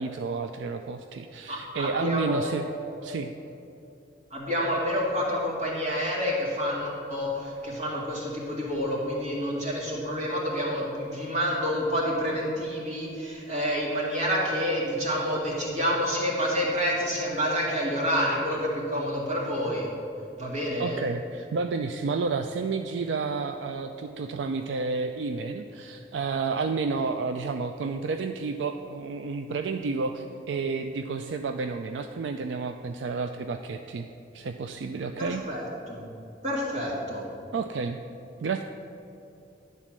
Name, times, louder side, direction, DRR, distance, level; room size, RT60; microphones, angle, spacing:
voice 1, 0.0-2.7 3.0-3.3 20.8-34.1 34.3-35.4 37.5-38.0 38.4-38.6, right 4 dB, 90° right, 7 dB, 0.4 m, -30 dB
voice 2, 1.5-3.0 4.3-19.9 20.4-21.0 35.2-36.0 36.4-37.3, equal, 40° right, -4 dB, 2.0 m, -28 dB
10.5 x 4.1 x 7.4 m, 2.8 s
head